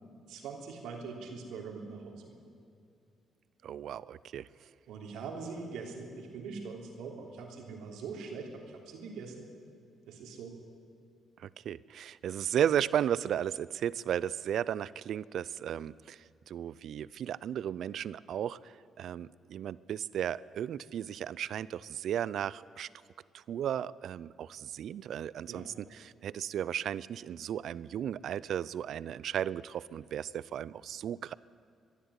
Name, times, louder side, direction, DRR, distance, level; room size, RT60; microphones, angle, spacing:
voice 1, 0.3-2.5 4.9-9.5 10.1-10.6 25.5-25.7, right 4 dB, 85° right, 1 dB, 3.2 m, -42 dB
voice 2, 3.6-4.5 11.4-22.9 23.3-31.3, right 10 dB, 70° right, 20 dB, 0.5 m, -35 dB
22.5 x 12.0 x 9.7 m, 2.4 s
cardioid pair, 90°, 0 cm